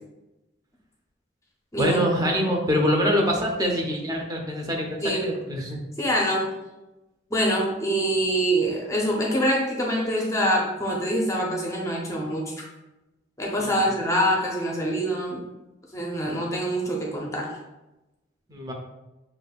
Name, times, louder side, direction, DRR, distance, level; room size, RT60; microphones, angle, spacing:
voice 1, 1.8-5.8 13.6-13.7 18.5-18.7, equal, 20° right, 1 dB, 0.7 m, -24 dB
voice 2, 6.0-6.5 7.3-12.5 13.4-15.4 15.9-17.6, equal, 15° left, -2 dB, 0.7 m, -25 dB
6.8 x 2.5 x 2.3 m, 1.0 s
head